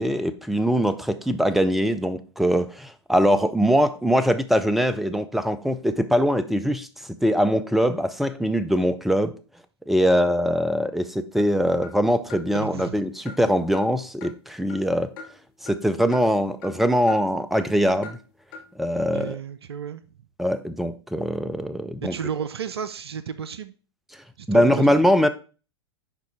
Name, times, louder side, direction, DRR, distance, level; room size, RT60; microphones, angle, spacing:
voice 1, 0.0-6.9 7.2-9.3 9.9-15.1 15.6-18.2 18.8-19.4 20.4-22.2 24.5-25.3, equal, ahead, 0.5 m, -22 dB
sound 1, 11.3-11.5 11.8-11.9 12.3-12.4 12.8-12.9 13.3-13.4 13.7-13.9 14.2-14.4 14.7-14.9 15.2-15.3 15.7-15.8 16.1-16.2 16.6-16.7 17.1-17.2 17.6-17.7 18.0-18.2 18.5-18.6, left 4 dB, 50° left, 1.7 m, -40 dB
voice 2, 12.5-13.0 19.1-20.0 22.0-23.7 24.4-25.0, right 7 dB, 65° right, 0.5 m, -32 dB
10.5 x 3.8 x 3.4 m
figure-of-eight pair, 95°, 14 cm